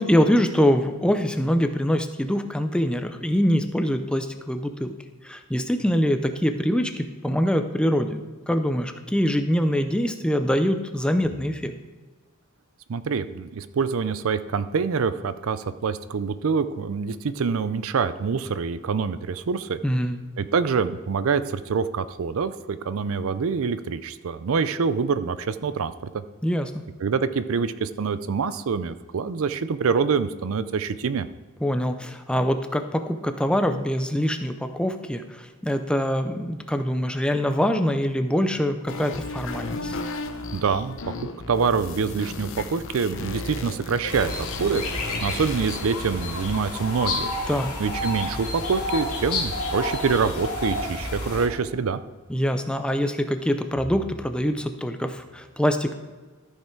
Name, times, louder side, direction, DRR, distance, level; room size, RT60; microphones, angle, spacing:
voice 1, 0.0-4.9 5.2-8.2 8.5-11.7 19.8-20.2 26.4-26.7 31.6-40.0 47.5-47.7 52.3-55.9, equal, 5° left, 7 dB, 0.5 m, -24 dB
voice 2, 12.9-19.8 20.4-26.2 27.0-31.3 40.5-44.8 45.2-47.3 47.8-52.0, right 5 dB, 65° right, 13 dB, 0.4 m, -25 dB
sound 1, 38.9-45.8, left 3 dB, 60° left, 0.8 m, -35 dB
sound 2, 44.1-51.5, left 2 dB, 75° left, 2.5 m, -30 dB
13.5 x 5.7 x 4.5 m, 1.3 s
head